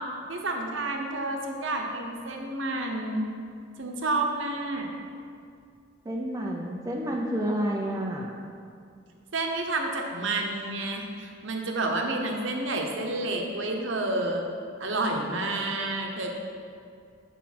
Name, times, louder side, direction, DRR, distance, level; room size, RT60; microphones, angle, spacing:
voice 1, 0.3-3.3 3.8-4.9 9.3-14.5 14.8-16.4, right 2 dB, 65° right, 2 dB, 0.9 m, -30 dB
voice 2, 6.1-8.3, equal, 15° right, -1 dB, 0.4 m, -29 dB
8.4 x 5.4 x 4.2 m, 2.4 s
head